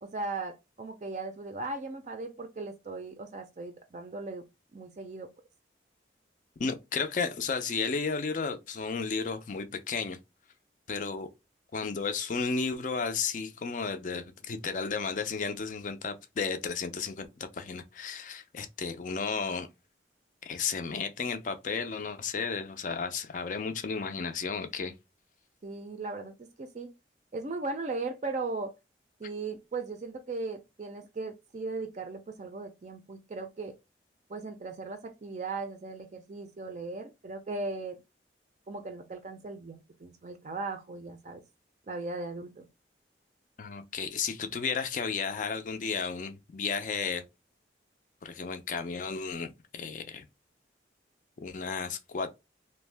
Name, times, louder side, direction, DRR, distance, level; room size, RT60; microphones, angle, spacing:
voice 1, 0.0-4.4 4.7-5.3 25.6-26.9 27.3-28.7 29.2-33.7 34.3-38.0 38.7-41.4 41.9-42.7, right 3 dB, 40° right, 0.4 m, -38 dB
voice 2, 6.6-10.2 10.9-11.3 11.7-19.7 20.4-24.9 43.6-47.2 48.2-50.3 51.4-52.3, left 5 dB, 45° left, 0.4 m, -33 dB
2.5 x 2.1 x 3.2 m
head